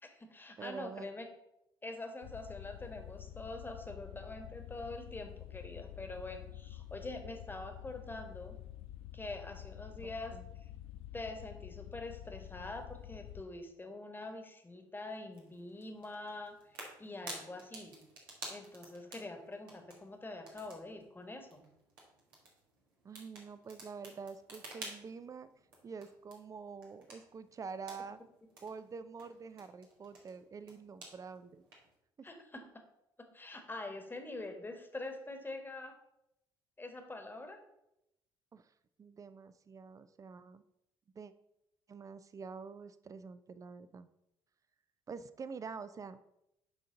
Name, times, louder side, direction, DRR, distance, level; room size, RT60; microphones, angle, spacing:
voice 1, 0.0-1.3 1.8-8.5 9.1-10.7 11.1-16.6 17.0-18.0 18.5-21.6 32.2-32.7 33.3-36.0 36.8-37.6, left 2 dB, 15° left, 5 dB, 1.3 m, -45 dB
voice 2, 0.6-1.2 10.0-10.5 23.0-25.5 25.8-28.2 28.6-31.6 32.2-32.3 38.5-38.7 39.0-40.6 41.1-41.3 41.9-44.1 45.1-46.2, right 5 dB, 30° right, 13 dB, 0.5 m, -47 dB
sound 1, 2.2-13.4, left 12 dB, 60° left, 0.5 m, -49 dB
Bonfire (raw recording), 15.3-31.9, right 2 dB, 75° right, 1.4 m, -53 dB
10.0 x 3.8 x 3.8 m, 0.84 s
figure-of-eight pair, 50°, 12 cm